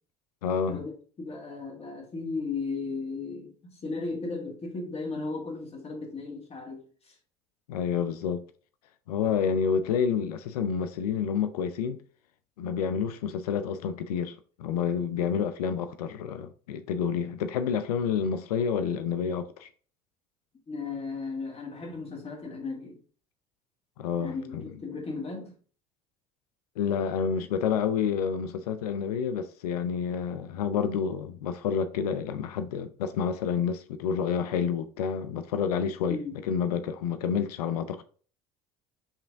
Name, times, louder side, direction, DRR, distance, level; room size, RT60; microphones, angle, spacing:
voice 1, 0.4-0.8 7.7-8.4 9.1-12.0 12.6-19.7 24.0-24.6 26.8-38.0, left 7 dB, 90° left, 0.4 m, -29 dB
voice 2, 1.2-7.2 20.7-23.0 24.2-25.6 36.1-36.4, left 3 dB, 30° left, 1.8 m, -36 dB
4.7 x 3.3 x 3.5 m
hypercardioid pair, 75°, 19 cm